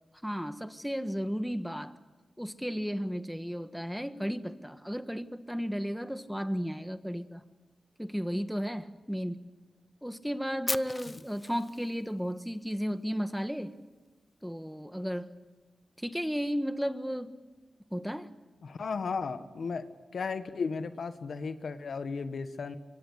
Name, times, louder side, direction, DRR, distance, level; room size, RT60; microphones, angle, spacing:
voice 1, 0.2-1.9 2.4-7.4 8.0-9.4 10.0-13.7 14.4-15.3 16.0-17.3 17.9-18.3, equal, ahead, 9 dB, 1.4 m, -34 dB
Fire, 10.7-12.7, left 2 dB, 25° left, 0.7 m, -38 dB
voice 2, 18.6-19.8 20.1-22.8, left 5 dB, 75° left, 9 dB, 1.5 m, -35 dB
26.0 x 23.0 x 6.6 m, 1.3 s
wide cardioid pair, 80°, 0 cm